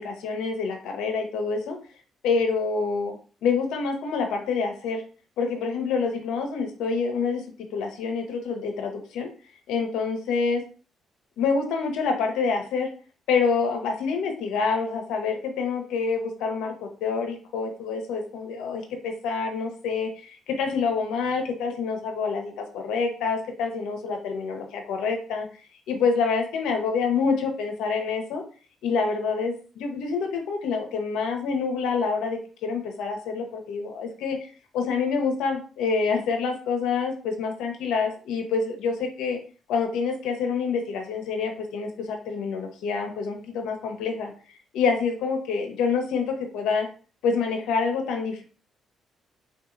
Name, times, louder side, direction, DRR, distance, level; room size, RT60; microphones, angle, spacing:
voice 1, 0.0-1.8 2.2-3.1 3.4-5.0 5.4-7.4 7.7-9.3 9.7-10.6 11.4-12.9 13.3-25.5 25.9-28.4 28.8-34.4 34.7-39.4 39.7-44.3 44.7-46.9 47.2-48.4, left 5 dB, 90° left, 4 dB, 0.6 m, -27 dB
3.4 x 2.7 x 2.4 m, 0.38 s
cardioid pair, 90°, 0 cm